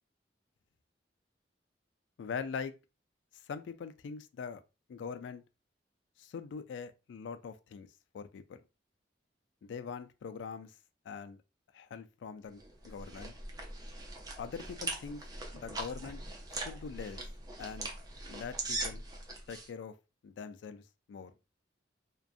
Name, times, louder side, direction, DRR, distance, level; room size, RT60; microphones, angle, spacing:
voice 1, 2.2-2.7 3.5-4.6 4.9-5.4 6.2-7.9 8.1-8.6 9.6-10.7 11.1-11.4 11.7-13.3 14.4-15.2 15.5-16.2 16.5-17.2 17.6-17.9 18.3-19.0 19.5-19.9 20.2-20.8 21.1-21.3, left 6 dB, 85° left, 0.3 m, -42 dB
sound 1, 12.6-19.7, right 2 dB, 20° right, 0.4 m, -41 dB
2.6 x 2.2 x 2.4 m
head